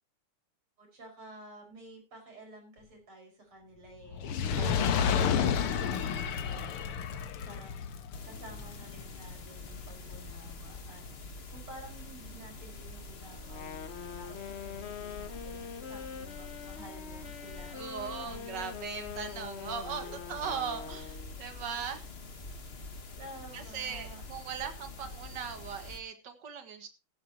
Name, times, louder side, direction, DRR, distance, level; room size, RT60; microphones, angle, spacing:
voice 1, 0.8-4.2 4.5-5.1 5.6-6.9 7.5-18.5 20.0-20.1 23.2-24.2, right 1 dB, 75° right, 3 dB, 6.4 m, -52 dB
Fire, 4.1-10.5 11.2-11.3, left 7 dB, 80° left, 2.1 m, -31 dB
voice 2, 4.5-5.2 17.7-20.0 20.3-22.1 23.5-26.9, right 7 dB, 55° right, 8 dB, 2.3 m, -39 dB
sound 1, 8.1-26.0, left 3 dB, 35° left, 1.3 m, -46 dB
Wind instrument woodwind instrument, 13.4-21.4, left 7 dB, 65° left, 0.6 m, -44 dB
14.5 x 13.0 x 2.9 m, 0.28 s
omnidirectional pair, 2.4 m